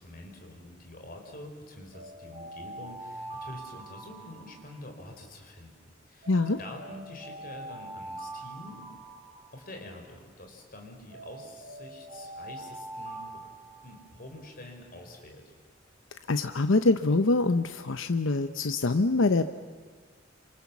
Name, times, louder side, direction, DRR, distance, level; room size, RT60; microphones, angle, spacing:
voice 1, 0.0-6.3 6.6-8.9 9.5-13.4 13.8-15.5, left 1 dB, 45° left, 3 dB, 4.7 m, -46 dB
sound 1, 1.9-5.1 6.2-10.0 11.1-14.3, right 2 dB, 35° right, 6.3 m, -44 dB
voice 2, 6.3-6.6 16.3-19.5, left 3 dB, 85° left, 10 dB, 0.8 m, -24 dB
27.5 x 26.5 x 7.3 m, 1.5 s
head